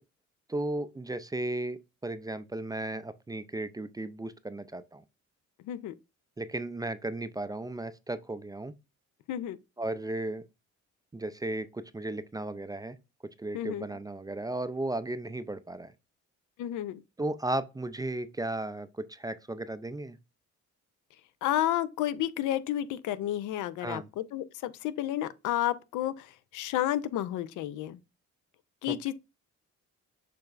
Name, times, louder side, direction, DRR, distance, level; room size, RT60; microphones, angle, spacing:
voice 1, 0.5-5.0 6.4-8.7 9.8-10.4 11.1-13.0 13.4-15.9 17.2-20.2 23.8-24.1 28.9-29.1, right 2 dB, 15° right, 0.3 m, -35 dB
voice 2, 13.5-13.9 16.6-17.0 21.4-28.0 28.8-29.1, left 12 dB, 85° left, 0.5 m, -31 dB
6.7 x 3.2 x 2.4 m
cardioid pair, 90°, 30 cm